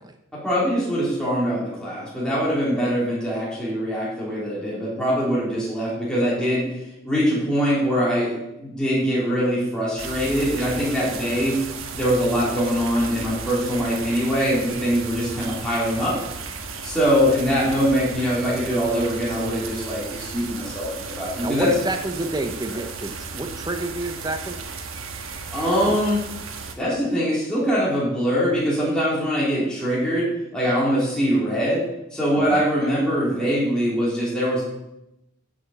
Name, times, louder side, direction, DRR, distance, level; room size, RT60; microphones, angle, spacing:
voice 1, 0.3-6.6 7.0-11.6 11.9-16.2 16.8-21.7 25.5-26.2 26.7-31.8 32.1-34.6, equal, 5° left, -8 dB, 3.4 m, -23 dB
sound 1, 10.0-26.8, right 4 dB, 70° right, 1.3 m, -35 dB
voice 2, 21.4-24.6 25.9-26.0 32.4-32.6, right 2 dB, 20° right, 5 dB, 0.7 m, -29 dB
8.2 x 7.3 x 7.0 m, 0.89 s
head